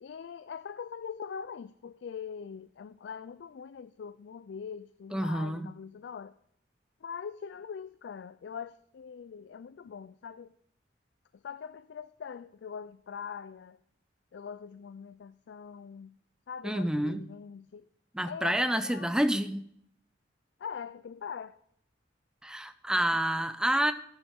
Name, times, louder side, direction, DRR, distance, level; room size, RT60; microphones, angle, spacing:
voice 1, 0.0-6.4 7.0-10.5 11.3-13.8 14.3-16.2 16.5-17.9 18.2-19.2 20.6-21.6 23.0-23.2, left 6 dB, 65° left, 0.3 m, -42 dB
voice 2, 5.1-5.7 16.6-17.3 18.1-19.7 22.4-23.9, right 1 dB, 5° right, 0.4 m, -28 dB
14.5 x 7.1 x 3.5 m
head